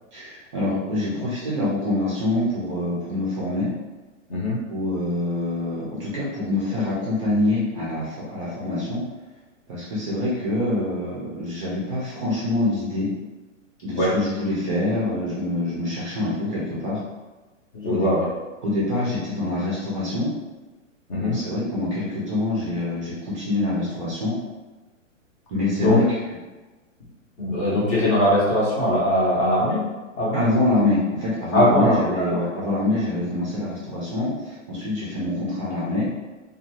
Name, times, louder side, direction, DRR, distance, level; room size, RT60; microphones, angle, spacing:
voice 1, 0.1-3.7 4.7-9.0 9.7-13.1 13.8-17.0 17.8-18.1 18.6-20.3 21.1-24.3 25.5-26.0 30.3-36.1, left 2 dB, 25° right, -7 dB, 0.5 m, -25 dB
voice 2, 17.7-18.2 21.1-21.4 25.8-26.0 27.4-29.8 30.2-30.4 31.5-32.0, left 1 dB, 25° left, -7 dB, 0.7 m, -20 dB
2.6 x 2.3 x 2.9 m, 1.2 s
hypercardioid pair, 150°, 39 cm